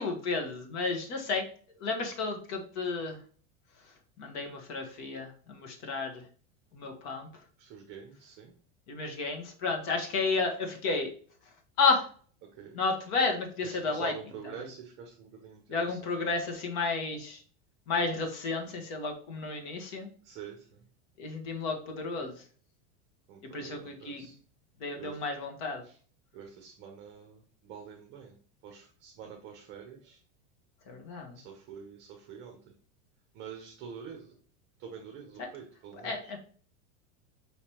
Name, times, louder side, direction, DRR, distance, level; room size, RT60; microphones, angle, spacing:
voice 1, 0.0-1.4 1.8-3.2 4.2-6.2 6.7-7.3 8.9-11.1 11.8-12.1 12.7-14.1 15.7-17.4 17.9-20.1 21.2-22.3 23.5-24.3 24.8-25.8 30.9-31.4 35.4-35.5 36.0-36.4, left 4 dB, 50° left, 3 dB, 1.4 m, -32 dB
voice 2, 7.6-8.5 12.4-12.8 13.6-16.1 20.2-20.8 23.3-24.4 24.9-25.2 25.8-26.0 26.3-28.4 28.6-30.2 31.3-32.6 33.3-34.3 34.8-36.4, right 7 dB, 30° right, 3 dB, 0.8 m, -46 dB
5.0 x 3.4 x 3.0 m, 0.43 s
supercardioid pair, 155°, 35 cm